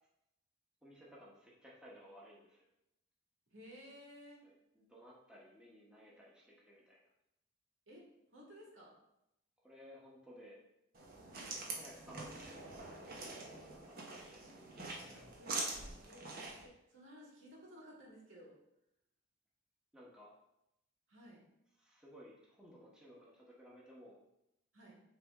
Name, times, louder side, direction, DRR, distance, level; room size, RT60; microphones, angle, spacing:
voice 1, 0.8-2.7 4.4-7.0 9.6-10.6 11.6-14.4 14.7-15.3 19.9-20.3 21.8-24.2, equal, 5° right, -5 dB, 1.2 m, -58 dB
voice 2, 3.5-4.4 7.9-9.0 11.3-11.6 15.4-18.5 21.1-21.4 24.7-25.0, equal, 90° right, -3 dB, 2.1 m, -57 dB
sound 1, 10.9-16.6, right 3 dB, 50° right, 1.1 m, -45 dB
8.4 x 3.5 x 3.7 m, 0.84 s
head